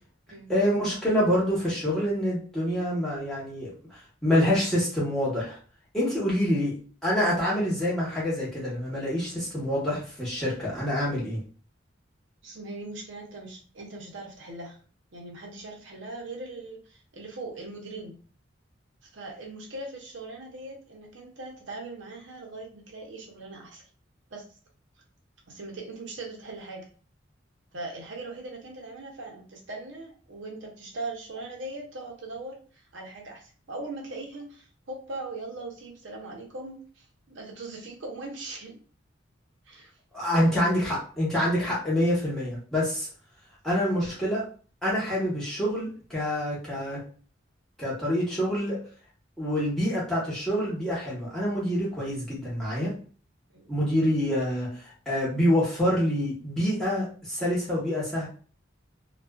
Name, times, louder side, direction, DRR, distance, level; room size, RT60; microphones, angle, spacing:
voice 1, 0.5-3.7 4.2-5.6 5.9-6.8 7.0-11.4 40.1-43.1 43.6-44.5 44.8-47.0 47.8-48.8 49.4-52.9 53.7-58.3, equal, 5° left, -8 dB, 1.0 m, -26 dB
voice 2, 12.4-14.8 15.1-18.2 19.1-23.9 24.3-24.4 25.5-26.9 27.7-32.6 32.9-38.8 39.7-39.9 53.5-53.8, right 2 dB, 70° right, 0 dB, 0.7 m, -40 dB
2.4 x 2.3 x 2.3 m, 0.41 s
head